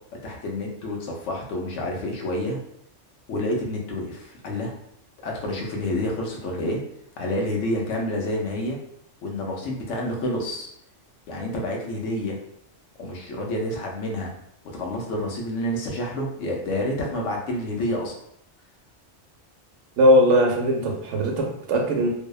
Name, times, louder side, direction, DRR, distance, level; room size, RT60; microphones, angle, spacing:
voice 1, 0.2-2.6 3.3-4.7 5.2-6.8 7.2-8.8 9.2-10.7 11.3-12.4 13.0-14.3 14.7-18.1, left 1 dB, 85° left, 0 dB, 0.9 m, -28 dB
voice 2, 20.0-22.1, equal, 80° right, 1 dB, 0.9 m, -19 dB
2.7 x 2.0 x 2.3 m, 0.73 s
omnidirectional pair, 1.3 m